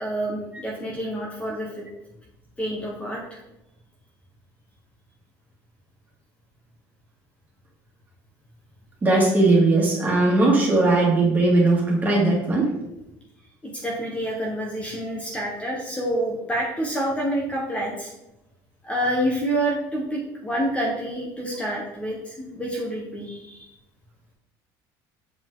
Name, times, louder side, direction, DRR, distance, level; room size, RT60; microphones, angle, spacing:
voice 1, 0.0-1.8 2.6-3.4 13.6-18.1 18.8-23.7, right 1 dB, 15° left, -2 dB, 1.4 m, -28 dB
voice 2, 9.0-12.7, right 2 dB, 20° right, -3 dB, 2.2 m, -19 dB
7.2 x 5.2 x 3.9 m, 0.89 s
cardioid pair, 140°, 8 cm